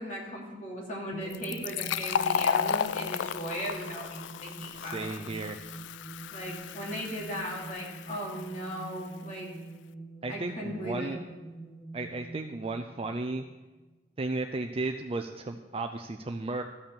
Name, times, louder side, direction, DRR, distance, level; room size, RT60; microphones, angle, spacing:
voice 1, 0.0-5.2 6.3-9.5 10.3-11.1, equal, 45° left, -3 dB, 2.8 m, -37 dB
sound 1, 1.1-13.9, right 2 dB, 5° left, 1.2 m, -46 dB
Fill (with liquid), 1.3-8.7, left 8 dB, 85° left, 0.3 m, -33 dB
voice 2, 4.8-5.6 10.2-11.2 11.9-13.4 14.2-16.6, right 2 dB, 35° right, 6 dB, 0.5 m, -34 dB
14.0 x 5.3 x 7.0 m, 1.2 s
head